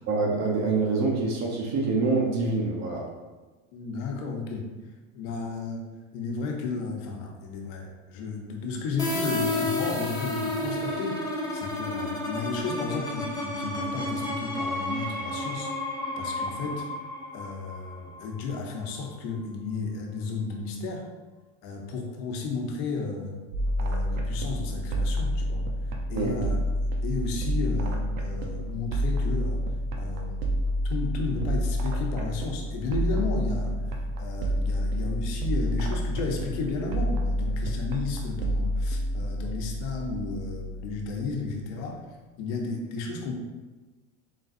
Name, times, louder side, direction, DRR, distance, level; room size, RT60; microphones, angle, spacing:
voice 1, 0.1-3.1 26.1-26.3, right 3 dB, 45° right, 0 dB, 0.8 m, -25 dB
voice 2, 3.7-4.6 5.1-5.8 6.1-11.2 11.5-15.7 16.2-16.9 17.3-21.0 21.6-23.4 23.8-25.7 26.1-26.6 27.0-29.6 30.0-30.4 30.8-42.0 42.4-43.3, left 4 dB, 65° left, 1 dB, 1.0 m, -33 dB
sound 1, 9.0-18.6, left 1 dB, 10° left, 1.0 m, -31 dB
sound 2, 23.5-41.1, equal, 75° right, 0.8 m, -29 dB
3.9 x 3.8 x 2.6 m, 1.2 s
supercardioid pair, 105°, 39 cm